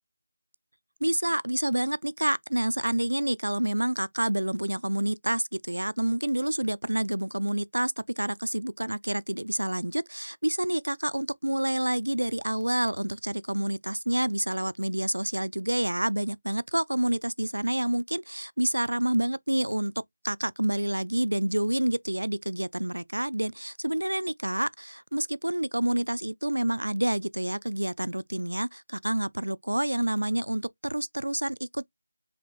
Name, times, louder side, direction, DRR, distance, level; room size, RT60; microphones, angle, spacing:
voice 1, 1.0-19.9 20.2-31.9, right 1 dB, 75° right, 0.4 m, -28 dB
4.9 x 3.0 x 3.1 m
figure-of-eight pair, 165°, 0 cm